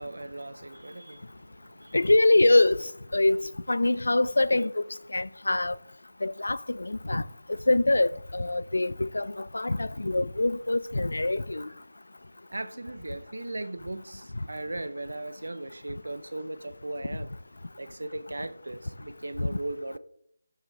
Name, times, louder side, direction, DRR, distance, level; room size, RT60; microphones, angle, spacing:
voice 1, 0.0-2.1 12.5-17.3 17.8-20.0, right 2 dB, 85° right, 1.0 m, -38 dB
voice 2, 1.9-2.9 3.1-4.8 5.1-5.7 6.2-7.2 7.5-11.7 19.4-19.5, left 2 dB, 85° left, 0.6 m, -24 dB
12.0 x 7.5 x 3.5 m
figure-of-eight pair, 180°, 0 cm